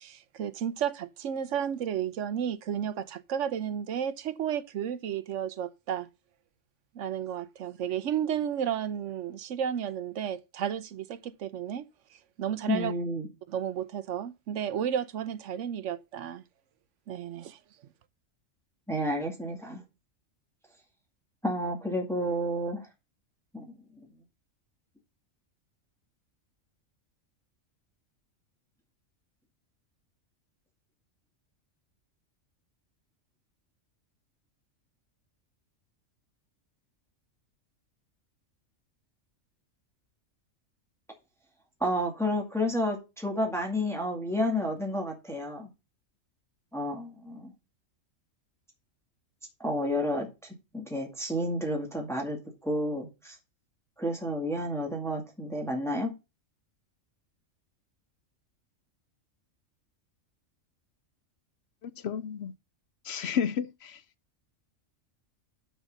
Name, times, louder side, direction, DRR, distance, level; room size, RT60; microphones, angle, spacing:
voice 1, 0.0-6.1 6.9-11.9 12.4-12.9 13.5-16.4 17.1-17.6, right 9 dB, 70° right, 1.0 m, -32 dB
voice 2, 12.7-13.3 18.9-19.8 21.4-22.9 23.5-24.1 41.8-45.7 46.7-47.5 49.6-53.4 54.0-56.1, equal, ahead, 2.1 m, -31 dB
voice 3, 61.8-62.5 63.0-64.0, left 7 dB, 60° left, 0.8 m, -32 dB
6.5 x 6.3 x 6.4 m
omnidirectional pair, 1.3 m